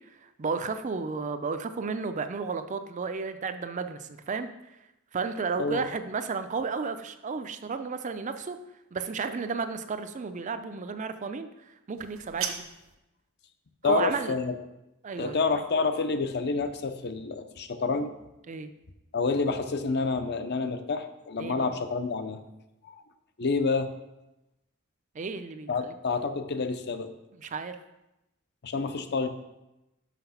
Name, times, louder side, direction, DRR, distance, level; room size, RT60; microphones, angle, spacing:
voice 1, 0.2-4.5 5.1-8.6 8.9-11.5 11.9-12.7 13.8-14.4 15.0-15.4 18.5-18.7 21.4-21.7 25.2-25.9 27.4-27.8, right 4 dB, 35° right, 10 dB, 0.4 m, -33 dB
voice 2, 5.6-5.9 13.8-14.6 15.2-18.1 19.1-22.4 22.9-23.0 23.4-23.9 25.7-27.1 28.6-29.3, left 4 dB, 50° left, 9 dB, 0.6 m, -28 dB
sound 1, 12.0-13.0, right 8 dB, 65° right, 0.9 m, -36 dB
6.2 x 5.8 x 5.7 m, 0.94 s
head